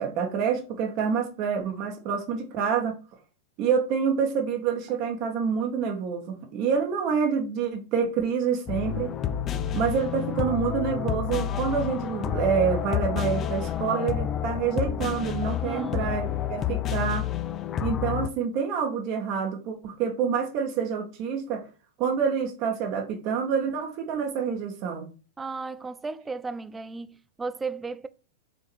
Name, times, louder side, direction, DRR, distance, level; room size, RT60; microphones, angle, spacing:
voice 1, 0.0-2.9 3.6-9.1 9.7-17.3 17.8-21.7 22.0-25.1, right 6 dB, 45° right, 1.8 m, -27 dB
sound 1, 8.7-18.3, left 10 dB, 30° left, 0.6 m, -29 dB
voice 2, 15.6-16.4 25.4-28.1, right 4 dB, 15° right, 0.5 m, -35 dB
6.0 x 3.7 x 4.8 m
hypercardioid pair, 100°, 0 cm